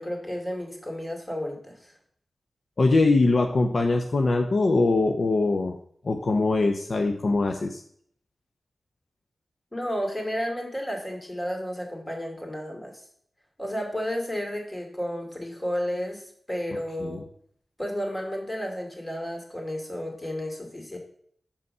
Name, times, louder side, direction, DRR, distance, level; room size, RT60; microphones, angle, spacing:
voice 1, 0.0-1.9 9.7-12.9 13.6-17.2 17.8-21.0, equal, 25° left, 2 dB, 2.5 m, -32 dB
voice 2, 2.8-5.8 6.0-7.8 17.0-17.2, left 3 dB, 60° left, 5 dB, 0.6 m, -22 dB
7.0 x 5.3 x 5.4 m, 0.63 s
cardioid pair, 55°, 0 cm